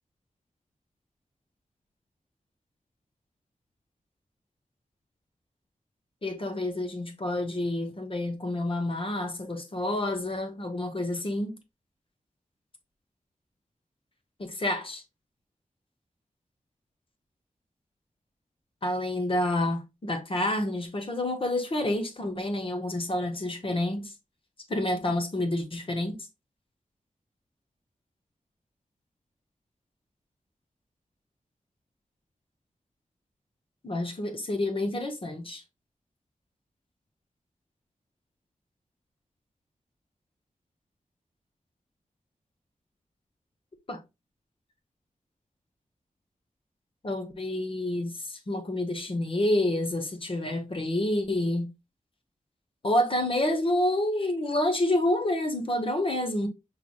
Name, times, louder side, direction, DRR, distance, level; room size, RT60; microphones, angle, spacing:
voice 1, 6.2-11.6 14.4-15.0 18.8-24.1 24.7-26.2 33.8-35.6 43.9-44.0 47.0-51.7 52.8-56.5, left 1 dB, 40° left, 1.0 m, -28 dB
5.7 x 3.3 x 2.3 m
wide cardioid pair, 100°, 13 cm